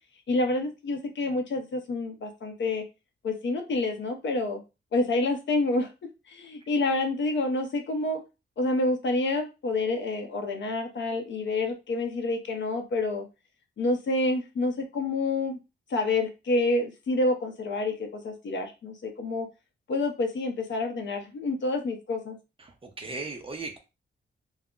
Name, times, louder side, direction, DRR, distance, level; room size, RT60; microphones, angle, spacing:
voice 1, 0.3-2.8 3.2-4.6 4.9-5.9 6.3-8.2 8.6-13.2 13.8-15.6 15.9-19.5 19.9-22.4, left 2 dB, 65° left, 5 dB, 0.6 m, -28 dB
voice 2, 22.6-23.8, right 3 dB, 25° right, 4 dB, 0.5 m, -37 dB
2.4 x 2.0 x 3.6 m, 0.28 s
wide cardioid pair, 155°, 21 cm